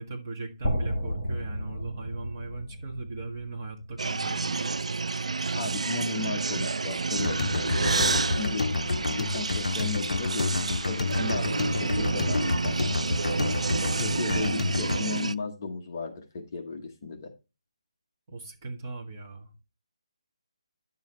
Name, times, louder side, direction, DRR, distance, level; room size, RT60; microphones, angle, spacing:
voice 1, 0.0-4.7 18.3-19.5, right 3 dB, 25° right, 1.6 m, -38 dB
sound 1, 0.6-4.7, equal, 5° left, 1.6 m, -33 dB
sound 2, 4.0-15.4, right 4 dB, 80° right, 0.3 m, -30 dB
voice 2, 5.6-7.4 7.7-8.7 9.1-13.1 13.8-17.3, left 4 dB, 25° left, 1.0 m, -35 dB
sound 3, 7.2-15.0, left 3 dB, 85° left, 0.4 m, -29 dB
10.5 x 7.2 x 3.1 m
hypercardioid pair, 175°, 3 cm